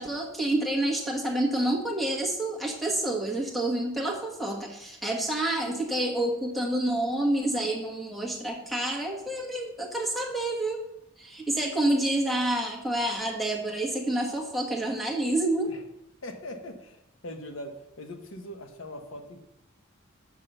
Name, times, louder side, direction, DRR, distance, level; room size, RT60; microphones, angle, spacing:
voice 1, 0.0-10.8 11.2-15.7, right 1 dB, ahead, 1 dB, 1.3 m, -28 dB
voice 2, 16.2-17.0 17.2-19.4, left 1 dB, 70° left, 6 dB, 1.1 m, -41 dB
7.4 x 6.1 x 6.5 m, 0.85 s
head